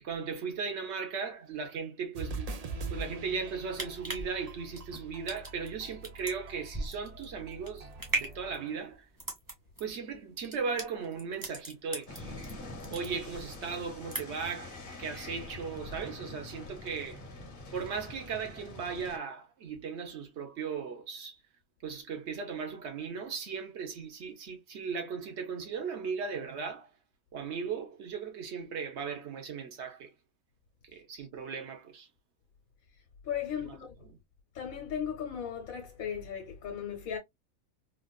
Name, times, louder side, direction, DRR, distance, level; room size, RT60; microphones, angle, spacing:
voice 1, 0.0-2.5 2.9-9.1 9.8-12.4 12.9-17.2 17.7-21.4 21.8-26.9 27.3-30.1 30.8-32.1, right 5 dB, 55° right, 1.1 m, -37 dB
sound 1, 2.2-8.8, right 3 dB, 90° right, 0.3 m, -43 dB
sound 2, 3.5-12.5 12.8-13.6 13.9-14.5 14.9-15.0, right 2 dB, 15° right, 1.0 m, -38 dB
sound 3, 12.1-19.2, left 2 dB, 45° left, 0.9 m, -45 dB
voice 2, 33.3-33.9 34.5-37.2, left 8 dB, 75° left, 1.3 m, -36 dB
3.6 x 2.5 x 2.2 m
omnidirectional pair, 1.5 m